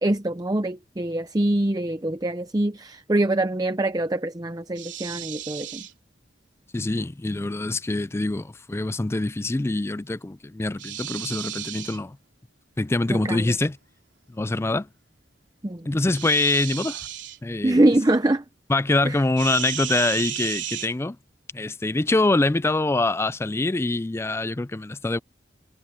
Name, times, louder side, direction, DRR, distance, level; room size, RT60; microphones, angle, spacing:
voice 1, 0.0-5.8 13.1-13.4 15.6-15.9 17.6-18.4 19.0-19.2, right 1 dB, 20° right, 0.7 m, -24 dB
sound 1, 4.8-5.9 10.8-12.0 16.1-17.4 19.4-20.9, right 11 dB, 85° right, 3.2 m, -33 dB
voice 2, 6.7-12.2 12.8-13.8 14.3-14.9 15.9-17.1 17.4-17.9 18.7-21.2 21.5-25.2, left 2 dB, 15° left, 0.4 m, -24 dB
head